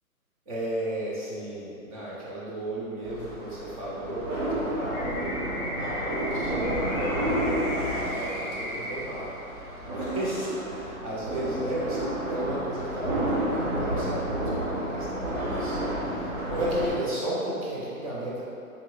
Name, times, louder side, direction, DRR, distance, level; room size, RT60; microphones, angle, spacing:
voice 1, 0.5-18.4, right 1 dB, 25° right, -7 dB, 0.6 m, -34 dB
sound 1, 3.0-16.9, right 1 dB, 60° right, 1.1 m, -31 dB
Car passing by, 4.1-14.5, equal, 80° right, 0.9 m, -43 dB
sound 2, 4.9-8.9, equal, 15° left, 0.6 m, -36 dB
3.9 x 3.1 x 3.1 m, 2.7 s
hypercardioid pair, 155°, 44 cm